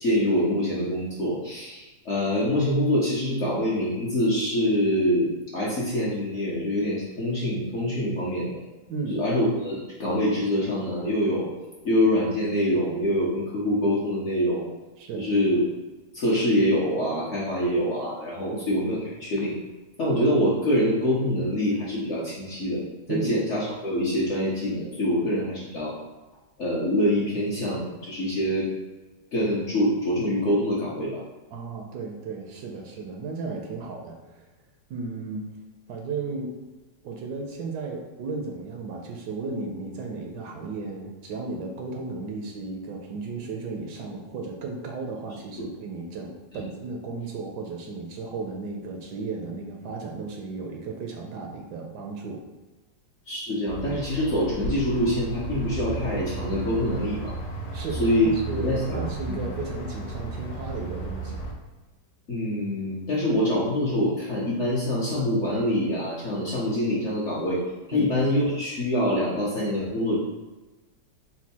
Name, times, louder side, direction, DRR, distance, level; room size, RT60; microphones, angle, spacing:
voice 1, 0.0-8.6 9.1-11.5 11.8-14.7 15.2-15.6 16.1-19.5 20.0-22.8 23.1-25.9 26.6-28.7 29.3-31.2 45.6-45.7 53.3-57.3 58.0-58.3 58.6-59.4 62.3-67.6 67.9-70.2, left 1 dB, 55° left, -6 dB, 0.8 m, -25 dB
voice 2, 8.9-9.2 15.0-15.3 18.5-18.6 23.1-23.3 31.5-34.5 34.9-35.5 35.9-36.5 37.0-52.4 57.7-61.4 67.9-68.1, right 3 dB, 75° right, 2 dB, 1.0 m, -34 dB
sound 1, 53.7-61.5, right 2 dB, 80° left, 1.5 m, -34 dB
4.4 x 2.3 x 4.1 m, 1.1 s
omnidirectional pair, 2.0 m